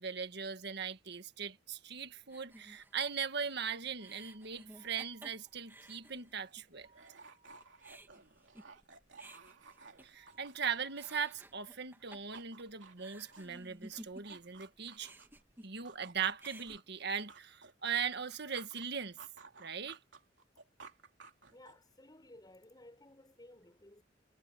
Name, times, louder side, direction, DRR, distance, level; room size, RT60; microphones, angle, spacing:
voice 1, 0.0-6.9 10.0-15.1 15.6-19.2 19.6-20.0, right 6 dB, 60° right, 1.7 m, -39 dB
sound 1, 2.3-6.7 7.0-7.1 7.5-10.6 10.9-14.6 14.9-16.0 16.3-16.8, right 1 dB, 10° right, 2.6 m, -55 dB
sound 2, 4.0-6.1 6.8-8.1 9.4-11.6, right 4 dB, 30° right, 7.0 m, -69 dB
sound 3, 5.8-5.9 6.1-11.6 11.9-15.4 15.9-18.9 19.2-21.9, right 4 dB, 80° right, 3.0 m, -57 dB
voice 2, 21.5-24.0, left 1 dB, 20° left, 6.8 m, -57 dB
head